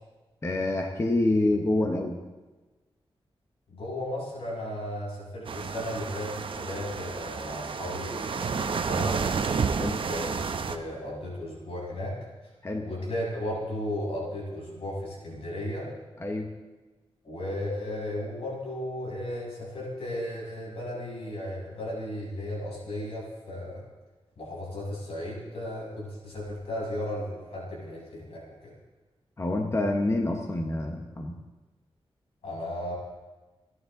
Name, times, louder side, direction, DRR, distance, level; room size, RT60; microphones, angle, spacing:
voice 1, 0.4-2.2 9.8-10.0 12.6-12.8 16.2-16.5 29.4-31.3, left 2 dB, 30° left, 2 dB, 1.2 m, -27 dB
voice 2, 3.7-9.2 10.0-10.4 10.7-12.2 12.8-15.9 17.2-23.8 24.4-28.7 32.4-33.0, left 1 dB, 80° left, -4 dB, 7.0 m, -35 dB
sound 1, 5.5-10.8, right 5 dB, 60° right, 0.9 m, -30 dB
28.0 x 11.0 x 3.9 m, 1.2 s
wide cardioid pair, 145°, 10 cm